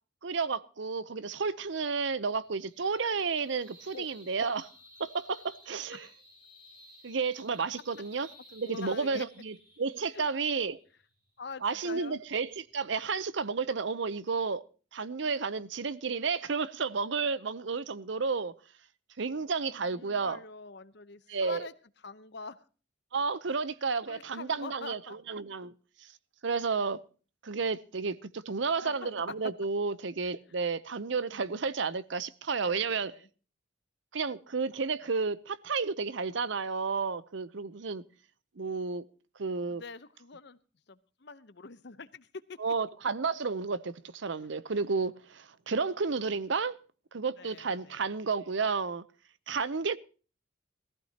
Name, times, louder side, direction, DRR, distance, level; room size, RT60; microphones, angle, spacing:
voice 1, 0.2-4.7 5.0-6.1 7.0-10.8 11.6-14.6 14.9-18.5 19.2-20.4 21.3-21.7 23.1-25.0 25.3-25.7 26.4-27.0 27.4-33.2 34.1-38.0 38.6-39.0 39.4-39.8 42.6-46.8 47.1-49.0 49.5-50.0, right 4 dB, 60° right, 0.7 m, -32 dB
sound 1, 0.9-13.5, equal, 45° right, 5.4 m, -58 dB
voice 2, 8.6-9.3 10.1-10.3 11.4-12.2 19.8-21.7 22.0-22.6 24.1-25.2 28.8-29.2 30.2-30.3 30.5-30.6 32.6-33.3 39.7-40.6 40.9-42.6 44.4-44.5 47.4-48.2, left 4 dB, 55° left, 0.8 m, -45 dB
19.0 x 14.5 x 2.9 m
head